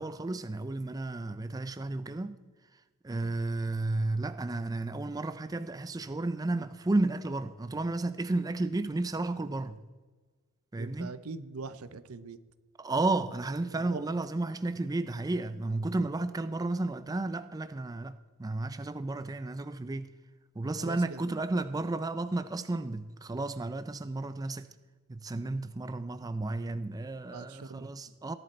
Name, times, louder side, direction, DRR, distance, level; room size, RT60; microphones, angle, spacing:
voice 1, 0.0-2.4 3.0-9.8 10.7-11.1 12.8-20.1 20.6-24.7 25.1-28.3, right 2 dB, 15° right, 0.4 m, -32 dB
voice 2, 10.8-12.4 13.7-14.1 20.8-21.3 27.3-27.9, right 4 dB, 80° right, 0.7 m, -42 dB
17.0 x 11.0 x 4.3 m
head